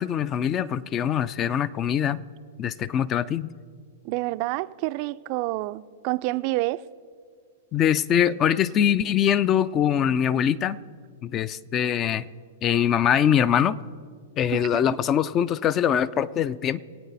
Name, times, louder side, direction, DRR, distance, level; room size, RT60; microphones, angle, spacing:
voice 1, 0.0-2.2 2.6-3.5 7.7-10.8 11.2-12.3 12.6-13.8 14.4-16.8, left 9 dB, 30° left, 0.4 m, -23 dB
voice 2, 4.0-6.8 14.5-14.8, right 20 dB, 45° right, 0.4 m, -28 dB
22.5 x 8.8 x 4.1 m
hypercardioid pair, 115°, 0 cm